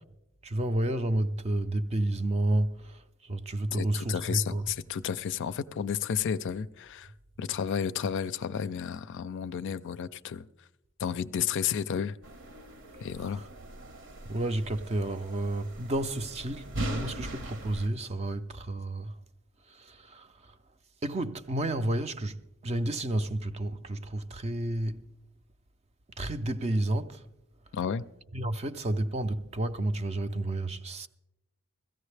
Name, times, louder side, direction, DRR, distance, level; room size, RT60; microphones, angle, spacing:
voice 1, 0.4-4.6 13.3-13.4 14.2-19.1 19.7-20.5 21.0-25.0 26.2-27.3 28.3-31.1, right 1 dB, 30° right, 0.4 m, -31 dB
voice 2, 3.7-7.1 7.4-10.4 11.0-12.2 13.0-13.4 27.7-28.0, left 8 dB, 55° left, 0.4 m, -32 dB
sound 1, 12.2-17.9, right 1 dB, 60° right, 0.9 m, -41 dB
16.5 x 14.5 x 3.3 m
head